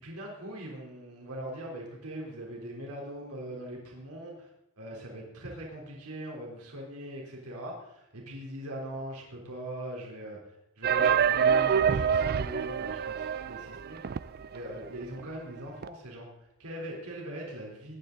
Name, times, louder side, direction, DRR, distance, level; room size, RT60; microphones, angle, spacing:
voice 1, 0.0-4.5 4.8-14.2 14.5-18.0, right 1 dB, 90° right, -1 dB, 3.6 m, -41 dB
sound 1, 10.8-14.6 14.8-14.9 15.2-15.3 15.8-15.9, right 7 dB, 45° right, 0.4 m, -26 dB
20.0 x 11.0 x 4.0 m, 0.84 s
head